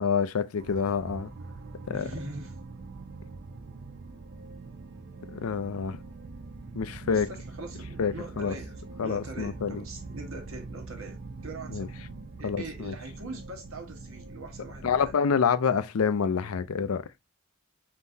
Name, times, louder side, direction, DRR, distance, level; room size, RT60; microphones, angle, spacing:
voice 1, 0.0-1.3 1.9-2.1 5.3-6.0 6.8-7.3 8.0-8.6 9.0-9.8 11.7-11.9 12.4-12.9 14.8-17.0, left 6 dB, 75° left, 0.5 m, -27 dB
sound 1, 0.6-15.1, right 3 dB, 50° right, 0.5 m, -43 dB
voice 2, 1.9-2.6 7.1-12.0 12.4-15.1, right 2 dB, 65° right, 1.3 m, -42 dB
4.0 x 3.8 x 2.7 m
head